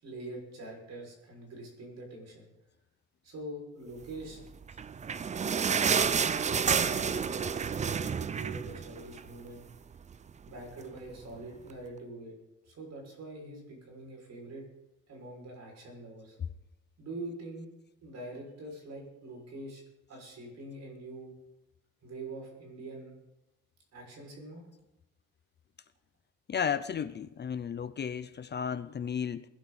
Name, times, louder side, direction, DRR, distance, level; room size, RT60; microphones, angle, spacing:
voice 1, 0.0-2.5 3.2-4.4 6.3-9.6 10.4-12.3 12.6-14.6 15.1-16.4 17.0-17.7 18.0-19.8 20.1-21.3 22.0-23.1 23.9-24.6, right 2 dB, 60° right, 0 dB, 6.4 m, -44 dB
sound 1, 4.6-9.4 9.7-9.8 10.1-10.3 11.0-11.1, right 6 dB, 25° right, 0.4 m, -29 dB
voice 2, 26.5-29.5, left 7 dB, 35° left, 13 dB, 0.6 m, -33 dB
21.5 x 12.0 x 4.3 m, 0.93 s
cardioid pair, 155°, 31 cm